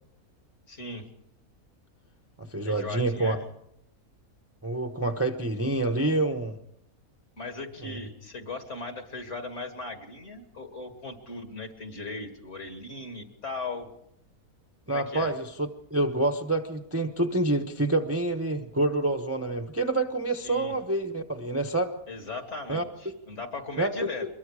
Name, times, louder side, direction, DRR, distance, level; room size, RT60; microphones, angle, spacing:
voice 1, 0.7-1.1 2.7-3.4 7.4-13.9 14.9-15.3 20.4-20.7 22.1-24.3, left 3 dB, 50° left, 5 dB, 2.7 m, -38 dB
voice 2, 2.4-3.4 4.6-6.5 7.8-8.0 14.9-21.9 22.7-22.8 23.8-24.1, right 2 dB, 10° right, 4 dB, 0.9 m, -27 dB
24.5 x 21.5 x 4.9 m, 0.77 s
omnidirectional pair, 1.6 m